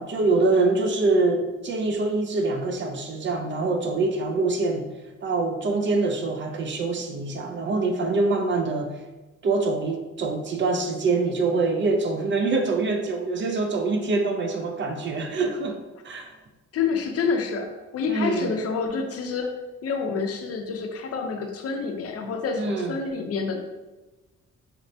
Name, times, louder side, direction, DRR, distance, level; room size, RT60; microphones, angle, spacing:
voice 1, 0.0-4.9 5.2-8.9 9.4-15.8 16.0-16.3 18.1-18.5 22.6-23.0, right 3 dB, 40° right, 4 dB, 0.4 m, -24 dB
voice 2, 16.7-19.6 19.8-23.6, left 5 dB, 55° left, 4 dB, 0.5 m, -28 dB
4.2 x 2.0 x 2.6 m, 1.1 s
cardioid pair, 90°, 30 cm